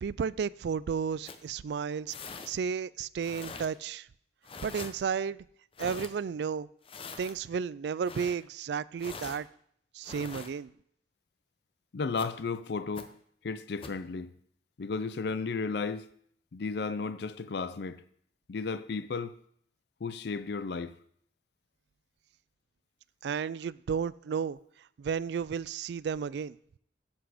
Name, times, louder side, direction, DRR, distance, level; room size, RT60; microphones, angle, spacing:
voice 1, 0.0-2.1 2.5-4.1 4.6-5.4 5.8-6.7 7.2-9.5 9.9-10.7 23.2-24.6 25.0-26.6, right 6 dB, 70° right, 0.3 m, -33 dB
sound 1, 1.3-1.5 2.1-2.5 3.2-3.7 4.4-4.9 5.8-6.1 6.8-7.3 8.0-8.4 9.0-9.4 10.0-10.5 12.2-12.3 13.0-13.1 13.8-14.0, left 4 dB, 30° left, 0.7 m, -43 dB
voice 2, 11.9-13.1 13.4-14.3 14.8-16.1 16.5-18.0 18.5-19.4 20.0-20.9, left 4 dB, 65° left, 0.5 m, -34 dB
9.7 x 8.1 x 5.0 m
head